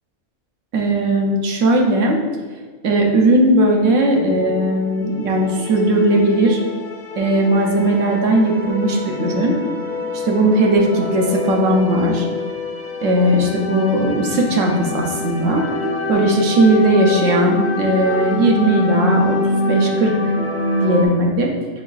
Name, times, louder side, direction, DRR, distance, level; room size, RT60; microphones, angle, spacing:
voice 1, 0.7-2.2 2.8-6.6 7.2-9.6 10.1-12.2 13.0-15.6 16.1-19.4 19.7-20.2 20.8-21.5, right 1 dB, 70° right, 0 dB, 1.0 m, -17 dB
sound 1, 4.2-21.1, left 2 dB, 55° left, 0.6 m, -25 dB
5.5 x 3.7 x 2.3 m, 1.5 s
omnidirectional pair, 1.4 m